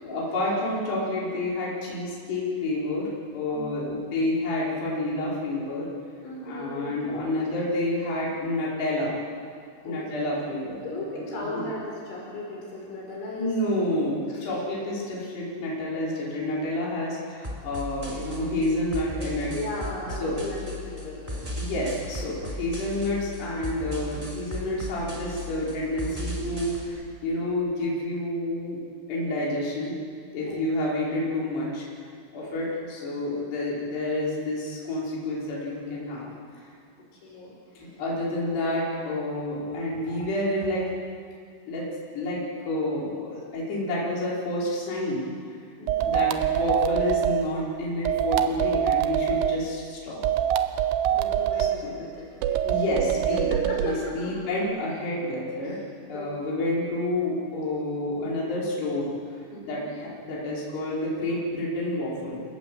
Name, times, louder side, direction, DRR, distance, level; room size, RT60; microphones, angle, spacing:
voice 1, 0.0-5.9 6.4-9.2 9.8-10.8 11.4-11.6 13.4-19.5 20.2-20.5 21.6-28.8 29.1-30.0 30.3-31.9 32.3-36.3 37.8-40.9 41.7-41.9 42.1-45.3 46.1-50.2 51.8-51.9 52.7-53.5 53.8-55.8 56.1-62.4, left 1 dB, 55° left, -6 dB, 7.0 m, -29 dB
voice 2, 3.5-4.1 6.2-7.4 9.9-10.3 10.8-13.5 14.3-14.5 19.5-21.6 22.2-22.5 30.5-30.6 32.4-32.8 37.1-37.9 45.8-46.2 51.1-52.9 53.5-54.3 55.6-55.8 56.1-56.6 59.5-59.9, left 2 dB, 70° left, -3 dB, 7.0 m, -37 dB
sound 1, 17.4-26.8, equal, 10° right, 3.5 m, -36 dB
sound 2, 45.9-47.4 48.1-49.6 50.2-51.8 52.4-53.9, right 11 dB, 75° right, 3.2 m, -24 dB
28.5 x 18.0 x 7.8 m, 2.2 s
omnidirectional pair, 5.7 m